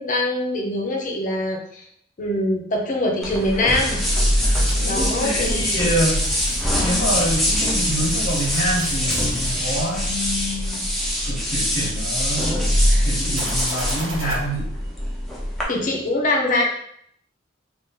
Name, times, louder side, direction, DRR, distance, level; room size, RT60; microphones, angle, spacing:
voice 1, 0.0-1.8 2.2-4.0 4.8-5.9 15.7-16.7, left 1 dB, 40° left, 0 dB, 0.6 m, -23 dB
sound 1, 3.2-15.6, equal, ahead, 0.6 m, -23 dB
voice 2, 4.3-6.3 6.8-10.8 11.2-14.7, equal, 85° left, -4 dB, 1.0 m, -27 dB
sound 2, 4.5-10.6 13.3-14.4, right 1 dB, 70° right, 0.7 m, -37 dB
2.7 x 2.5 x 3.6 m, 0.68 s
head